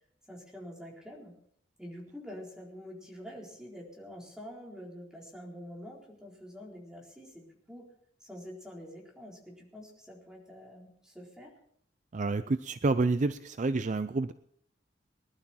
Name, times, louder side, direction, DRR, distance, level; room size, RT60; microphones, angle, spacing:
voice 1, 0.3-1.3 1.8-7.9 8.2-11.5, equal, 5° right, -2 dB, 4.1 m, -46 dB
voice 2, 12.1-14.3, right 3 dB, 40° right, 12 dB, 0.5 m, -29 dB
20.5 x 11.5 x 4.4 m, 0.65 s
head